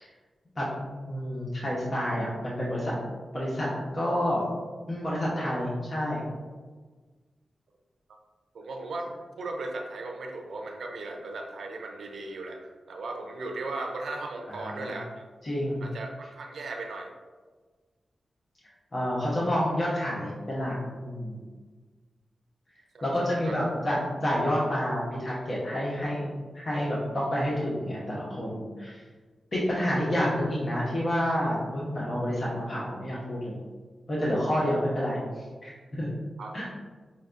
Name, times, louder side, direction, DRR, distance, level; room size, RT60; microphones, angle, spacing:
voice 1, 0.9-2.9 3.3-3.7 3.9-4.4 4.9-6.2 14.5-14.9 15.4-15.9 18.9-20.7 21.0-21.4 23.0-26.3 26.5-29.0 29.5-33.6 34.1-36.1 36.5-36.7, equal, 50° left, -7 dB, 0.9 m, -29 dB
voice 2, 8.5-9.1 9.4-15.2 15.8-17.1 22.9-23.6 36.4-36.6, right 2 dB, 80° right, 3 dB, 0.5 m, -37 dB
5.5 x 2.2 x 2.5 m, 1.4 s
cardioid pair, 55°, 0 cm